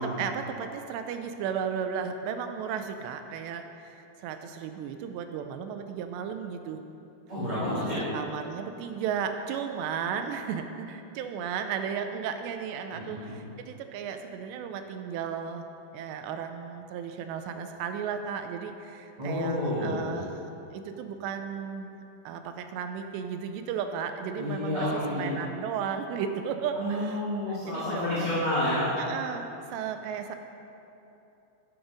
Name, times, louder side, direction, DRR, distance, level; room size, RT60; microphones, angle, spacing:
voice 1, 0.0-6.8 8.1-15.7 15.9-20.5 20.7-21.9 22.3-27.2 27.5-28.3 29.0-30.4, right 7 dB, 85° right, 7 dB, 2.6 m, -34 dB
voice 2, 7.3-8.0 12.9-13.3 19.2-20.2 24.4-25.3 26.7-28.9, left 1 dB, 15° right, -13 dB, 1.4 m, -30 dB
12.0 x 7.9 x 5.1 m, 2.9 s
omnidirectional pair, 5.4 m